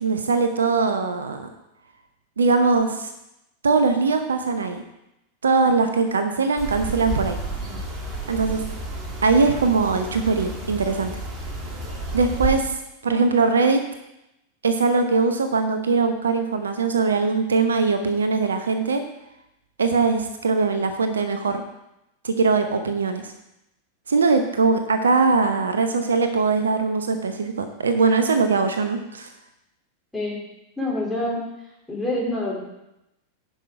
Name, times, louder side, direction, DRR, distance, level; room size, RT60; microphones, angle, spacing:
voice 1, 0.0-1.5 2.4-3.1 3.6-4.8 5.4-7.4 8.3-8.6 9.2-11.1 12.1-12.8 13.0-13.8 14.6-19.0 19.8-21.6 22.2-23.3 24.1-29.3, right 4 dB, 70° right, 8 dB, 0.7 m, -21 dB
sound 1, 6.6-12.6, right 2 dB, 25° right, 1.9 m, -31 dB
voice 2, 30.8-31.4 31.9-32.6, left 1 dB, 5° left, -5 dB, 3.2 m, -26 dB
10.0 x 5.6 x 4.9 m, 0.88 s
figure-of-eight pair, 90°, 0 cm